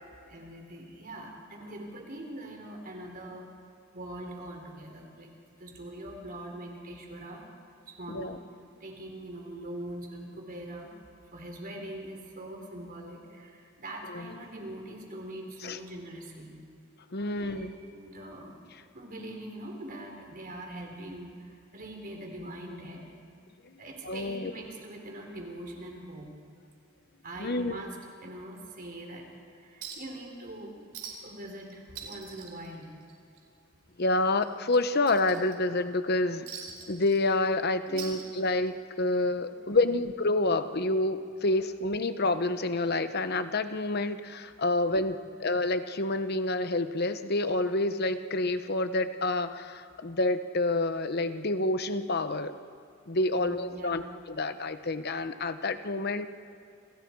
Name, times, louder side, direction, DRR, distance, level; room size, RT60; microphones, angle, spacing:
voice 1, 0.2-3.5 3.9-5.3 5.6-7.4 7.9-8.4 8.8-10.9 11.3-16.5 17.3-18.6 18.9-23.0 23.8-26.3 27.2-28.0 28.2-29.3 29.6-30.8 31.2-32.9 37.9-38.2 39.7-40.0 53.3-54.1, right 1 dB, 45° right, 1 dB, 4.4 m, -42 dB
voice 2, 8.1-8.4 14.1-14.3 15.6-15.8 17.1-17.7 24.0-24.5 27.4-27.8 34.0-36.5 36.9-52.6 53.1-56.3, left 2 dB, 50° left, 10 dB, 1.0 m, -28 dB
Chink clink, 29.8-30.2 30.5-30.6 30.9-31.4 31.7-33.4 33.7-33.9 34.4-35.8 36.5-37.6 37.9-38.8 39.9-40.0, right 6 dB, 80° right, 4.7 m, -43 dB
29.5 x 27.0 x 4.8 m, 2.5 s
head